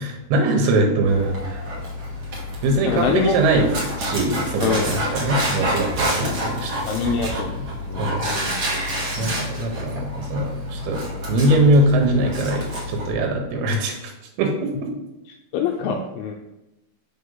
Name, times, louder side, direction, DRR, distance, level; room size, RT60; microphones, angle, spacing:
voice 1, 0.0-1.6 2.6-3.7 4.0-7.1 8.0-8.2 9.2-11.0 11.3-14.1 14.4-14.7, right 1 dB, 80° right, 1 dB, 2.7 m, -22 dB
Dog, 1.0-13.1, equal, 60° right, 1.3 m, -28 dB
voice 2, 2.8-3.4 4.6-5.0 6.2-6.3 6.9-8.5 15.5-16.4, left 5 dB, 80° left, 1 dB, 2.1 m, -25 dB
5.5 x 3.4 x 5.4 m, 0.95 s
omnidirectional pair, 4.5 m